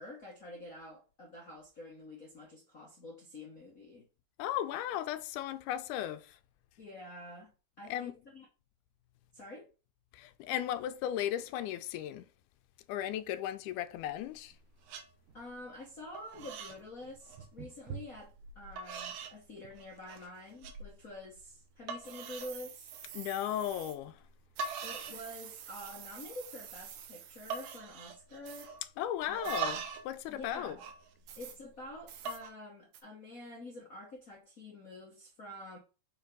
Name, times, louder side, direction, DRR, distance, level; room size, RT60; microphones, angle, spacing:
voice 1, 0.0-4.0 6.8-8.5 9.3-9.7 15.3-22.9 24.8-28.7 29.3-29.9 30.3-30.8 31.4-35.8, left 1 dB, 65° left, 0.8 m, -48 dB
voice 2, 4.4-6.4 7.8-8.1 10.1-12.3 12.9-14.5 23.1-24.2 28.8-30.8, left 11 dB, 80° left, 2.0 m, -36 dB
sound 1, 14.0-14.6 14.9-15.1 15.5-15.9 16.1-16.8 17.1-17.5 18.2-18.3 18.8-19.4 19.8-20.3 20.6-20.8 21.3-21.4 21.9-22.5 22.9-23.2 24.3-24.4 24.6-25.2 25.5-26.1 26.4-26.5 26.7-27.1 27.5-28.9 29.2-30.1 30.4-31.7 32.1-32.5, right 5 dB, 75° right, 2.2 m, -41 dB
sound 2, 14.5-14.6 15.3-15.4 16.0-16.1 16.3-18.8 19.1-19.3 19.6-20.2 20.6-21.4 22.1-24.0 24.6-27.8 28.5-28.7 29.4-29.6 31.3-31.6 32.1-32.4 32.9-33.0, right 8 dB, 90° right, 2.5 m, -49 dB
5.5 x 3.4 x 5.2 m
omnidirectional pair, 3.6 m